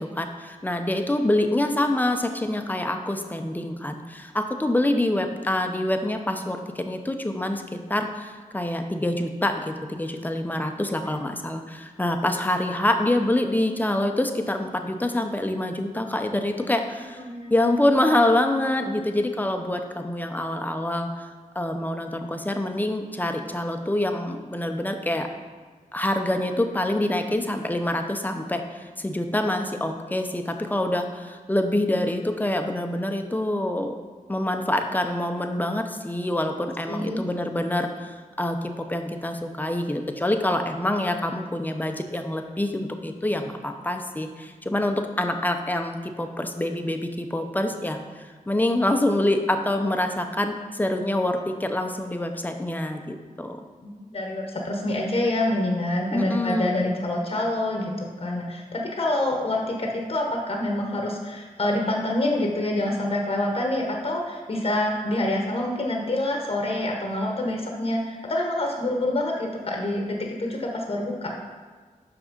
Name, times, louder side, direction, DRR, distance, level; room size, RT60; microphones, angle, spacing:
voice 1, 0.0-17.2 17.5-21.3 21.5-25.3 25.9-33.9 34.3-53.6 56.1-56.8, left 1 dB, 10° left, 5 dB, 0.7 m, -26 dB
voice 2, 17.2-17.5 36.9-37.2 53.8-71.3, left 1 dB, 45° left, 0 dB, 1.0 m, -26 dB
6.2 x 6.0 x 5.2 m, 1.5 s
wide cardioid pair, 100°, 14 cm